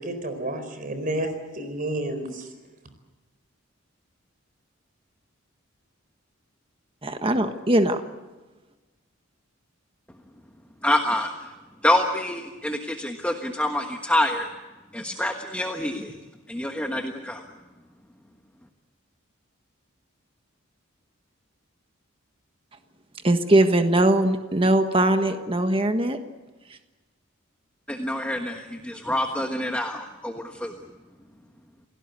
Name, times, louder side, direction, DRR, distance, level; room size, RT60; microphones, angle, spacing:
voice 1, 0.0-2.5, right 1 dB, 40° right, 8 dB, 4.3 m, -30 dB
voice 2, 7.0-8.0 23.2-26.2, right 1 dB, 25° right, 7 dB, 1.4 m, -21 dB
voice 3, 10.8-11.5 11.8-14.5 14.9-16.1 16.5-17.4 27.9-30.7, left 1 dB, 5° left, 3 dB, 1.3 m, -26 dB
28.5 x 18.0 x 8.2 m, 1.2 s
head